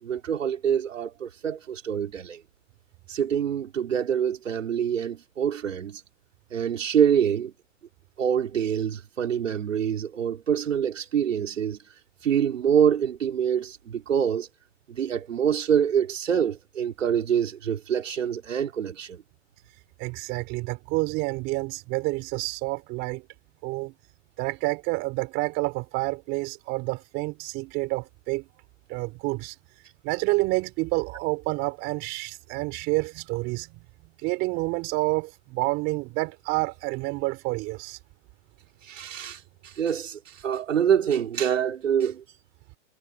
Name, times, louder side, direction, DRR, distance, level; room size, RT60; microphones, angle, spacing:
voice 1, 0.0-2.4 3.1-6.0 6.5-7.5 8.2-11.8 12.2-14.5 14.9-19.2 38.9-42.2, right 8 dB, 85° right, 4.7 m, -25 dB
voice 2, 20.0-23.2 23.6-23.9 24.4-28.5 28.9-29.5 30.0-33.8 34.2-38.0, right 24 dB, 30° right, 4.5 m, -28 dB
hypercardioid pair, 160°, 37 cm